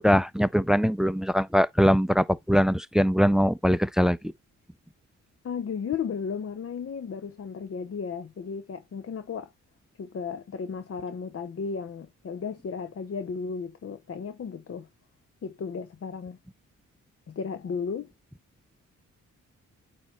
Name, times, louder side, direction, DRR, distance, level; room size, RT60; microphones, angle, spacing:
voice 1, 0.0-4.2, equal, ahead, 0.5 m, -22 dB
voice 2, 5.4-9.5 10.0-14.9 15.4-16.4 17.3-18.1, left 6 dB, 45° left, 0.9 m, -34 dB
8.8 x 3.0 x 4.2 m
cardioid pair, 65°, 31 cm